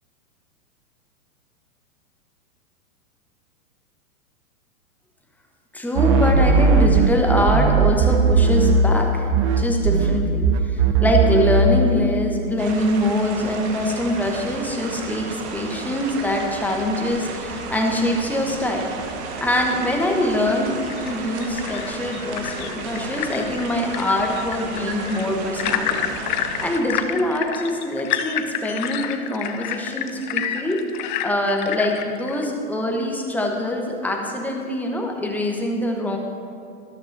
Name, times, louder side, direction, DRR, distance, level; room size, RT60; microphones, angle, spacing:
voice 1, 5.7-18.9 19.4-26.0 26.3-30.8 31.2-36.2, left 1 dB, 5° left, 1 dB, 0.9 m, -24 dB
sound 1, 5.9-9.0 9.3-11.9, right 4 dB, 25° right, 0.4 m, -17 dB
sound 2, 12.6-26.8, right 4 dB, 45° right, 1.3 m, -33 dB
sound 3, 20.9-32.5, left 10 dB, 35° left, 0.5 m, -29 dB
12.5 x 12.0 x 2.7 m, 2.5 s
figure-of-eight pair, 110°, 44 cm